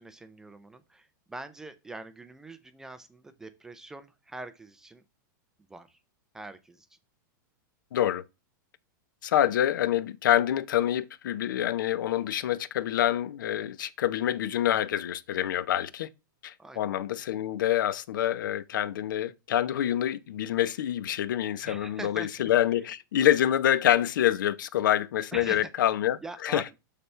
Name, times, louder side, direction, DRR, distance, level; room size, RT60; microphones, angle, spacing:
voice 1, 0.0-5.0 5.7-6.0 6.3-6.9 16.6-16.9 21.6-22.5 25.3-25.9 26.2-26.6, right 2 dB, 5° right, 0.4 m, -43 dB
voice 2, 7.9-8.2 9.2-16.1 16.4-26.6, left 11 dB, 70° left, 0.7 m, -26 dB
6.8 x 6.7 x 3.2 m
supercardioid pair, 175°, 11 cm